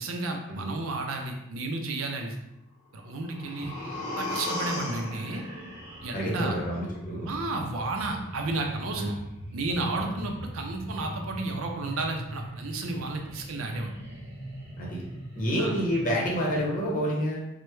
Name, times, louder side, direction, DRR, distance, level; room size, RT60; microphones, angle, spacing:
voice 1, 0.0-2.3 2.9-3.8 4.2-5.4 6.0-6.6 7.3-9.1 9.5-13.9 15.6-15.7, right 2 dB, 75° right, 3 dB, 0.5 m, -32 dB
sound 1, 3.0-7.0 7.3-7.4, left 2 dB, 80° left, 0.7 m, -37 dB
sound 2, 3.4-16.9, right 1 dB, 55° right, 0.9 m, -42 dB
voice 2, 6.1-7.3 9.0-9.1 10.0-10.3 14.8-15.0 15.4-17.4, equal, 40° left, -3 dB, 0.8 m, -29 dB
3.2 x 2.1 x 3.0 m, 0.88 s
head